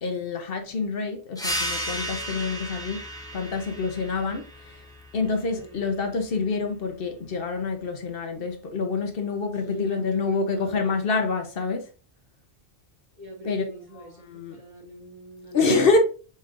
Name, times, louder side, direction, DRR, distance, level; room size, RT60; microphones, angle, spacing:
voice 1, 0.0-3.0 3.3-4.5 5.1-11.9 13.4-13.6 14.0-14.6 15.5-16.0, left 4 dB, 65° left, 1.0 m, -27 dB
sound 1, 1.4-6.5, equal, 5° left, 0.9 m, -34 dB
voice 2, 9.5-11.1 13.1-15.7, equal, 45° right, 1.9 m, -41 dB
4.9 x 4.3 x 2.5 m
omnidirectional pair, 1.0 m